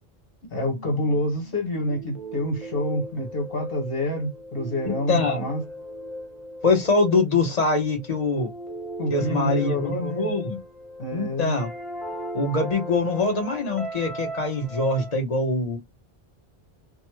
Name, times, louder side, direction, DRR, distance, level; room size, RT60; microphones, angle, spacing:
voice 1, 0.5-5.6 9.0-10.3 11.0-11.6, left 1 dB, 65° left, 1.5 m, -27 dB
sound 1, 0.6-15.1, equal, ahead, 0.9 m, -37 dB
voice 2, 4.9-5.5 6.6-8.5 9.1-10.6 11.1-11.7 12.3-15.8, left 3 dB, 40° left, 1.1 m, -23 dB
3.0 x 2.3 x 3.0 m
omnidirectional pair, 1.1 m